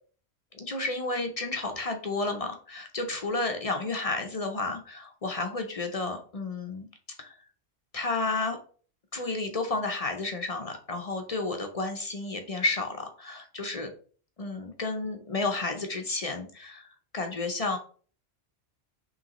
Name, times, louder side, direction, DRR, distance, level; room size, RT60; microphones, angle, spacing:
voice 1, 0.5-6.9 7.2-7.4 7.9-8.6 9.1-13.9 14.4-16.9 17.1-17.8, left 3 dB, 40° left, 4 dB, 0.6 m, -31 dB
5.2 x 3.2 x 3.0 m, 0.42 s
omnidirectional pair, 1.2 m